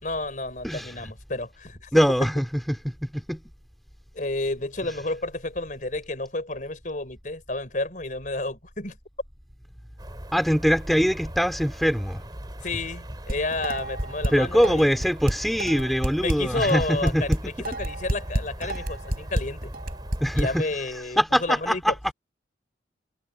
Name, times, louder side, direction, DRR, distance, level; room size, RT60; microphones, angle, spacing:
voice 1, 0.0-1.9 4.1-9.0 12.6-15.0 16.2-19.7 20.3-21.9, left 2 dB, 45° left, 4.4 m, -31 dB
voice 2, 0.6-1.0 1.9-3.4 10.3-12.2 14.3-17.4 18.6-18.7 20.2-22.1, equal, ahead, 2.3 m, -23 dB
sound 1, 10.0-20.6, equal, 25° right, 4.1 m, -39 dB
Dishes pots and pans, 13.3-14.3 14.6-20.4, right 1 dB, 55° right, 5.5 m, -28 dB
head